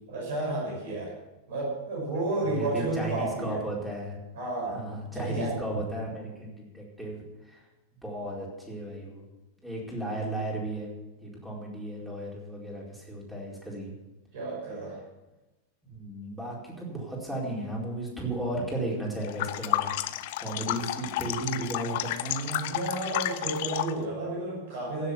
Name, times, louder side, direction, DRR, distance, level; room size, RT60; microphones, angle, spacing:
voice 1, 0.1-1.1 1.5-3.6 4.3-4.8 5.1-5.6 14.3-15.0 22.6-25.1, right 2 dB, 55° right, -3 dB, 6.3 m, -32 dB
voice 2, 2.4-4.2 4.7-7.6 8.0-9.2 9.6-10.9 11.2-14.0 15.8-20.0 20.4-22.8, right 1 dB, 5° right, -3 dB, 4.5 m, -35 dB
sound 1, 19.2-24.0, left 14 dB, 50° left, 0.7 m, -31 dB
16.0 x 7.7 x 7.1 m, 1.1 s
figure-of-eight pair, 90°, 0 cm